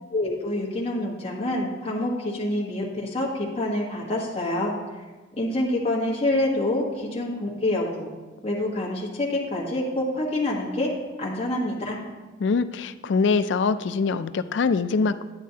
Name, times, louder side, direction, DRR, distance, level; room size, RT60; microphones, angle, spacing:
voice 1, 0.1-4.7 5.4-8.1 8.4-10.9 11.2-12.0, left 1 dB, 30° left, -4 dB, 1.3 m, -26 dB
voice 2, 12.4-15.2, left 4 dB, 70° left, 13 dB, 0.4 m, -23 dB
9.5 x 9.1 x 2.8 m, 1.3 s
head